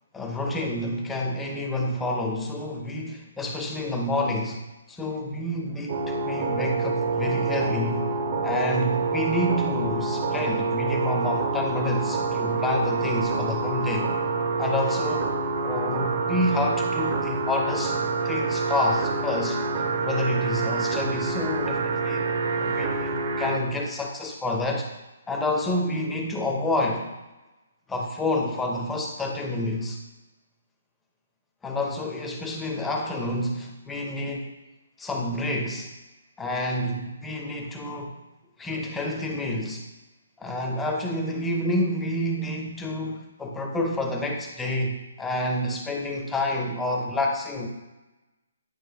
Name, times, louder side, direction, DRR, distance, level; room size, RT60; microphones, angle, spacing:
voice 1, 0.1-4.6 4.9-8.1 8.4-14.1 14.6-15.4 15.6-18.0 18.2-19.6 20.0-22.2 22.6-24.9 25.3-27.1 27.9-30.0 31.6-34.5 35.0-35.9 36.4-38.2 38.6-39.8 40.4-47.7, left 1 dB, 5° left, 1 dB, 0.8 m, -28 dB
sound 1, 5.9-23.6, right 4 dB, 40° right, 0.8 m, -27 dB
9.3 x 4.8 x 3.5 m, 1.1 s
hypercardioid pair, 155°, 0 cm